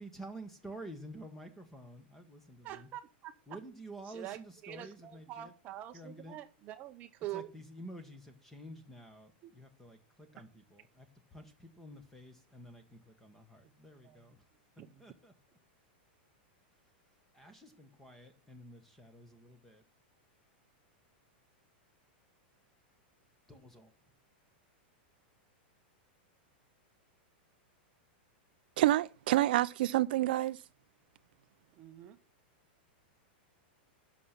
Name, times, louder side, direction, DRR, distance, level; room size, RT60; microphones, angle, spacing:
voice 1, 0.0-2.9 3.5-5.5 5.9-6.4 7.3-14.5 15.0-15.3 17.3-19.8 23.5-23.9, right 1 dB, 5° left, 1.4 m, -50 dB
voice 2, 2.6-3.6 4.1-7.5 9.4-9.5 13.6-13.7 14.0-14.2 14.8-15.0 31.8-32.2, right 13 dB, 25° right, 0.7 m, -45 dB
voice 3, 28.8-30.6, right 15 dB, 60° right, 0.4 m, -28 dB
10.5 x 6.0 x 5.9 m
supercardioid pair, 165°, 6 cm